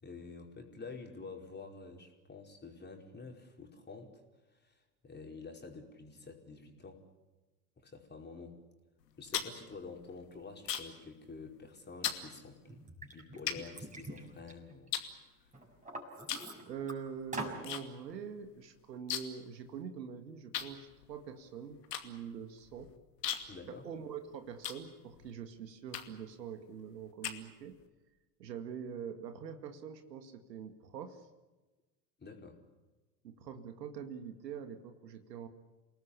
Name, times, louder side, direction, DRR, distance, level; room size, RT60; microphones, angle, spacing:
voice 1, 0.0-7.0 7.8-8.6 9.2-14.9 15.2-15.5 23.5-23.9 32.2-32.6, left 4 dB, 20° left, 2 dB, 4.9 m, -49 dB
sound 1, 9.0-11.1 11.4-11.7 12.0-12.3 12.9-13.0 13.5-14.4 14.9-15.8 16.2-16.6 16.8-17.8 18.1-18.2 18.4-19.5 19.8-19.9 20.5-25.3 25.9-26.3 26.8-27.9, left 10 dB, 75° left, 2.6 m, -39 dB
Liquid, 12.0-12.1 12.7-15.1 15.5-16.9 17.3-17.6, right 2 dB, 15° right, 6.3 m, -44 dB
voice 2, 16.7-22.9 23.7-27.8 28.4-31.3 33.2-35.5, right 7 dB, 75° right, 8 dB, 2.1 m, -44 dB
28.5 x 18.5 x 8.5 m, 1.2 s
figure-of-eight pair, 75°, 50 cm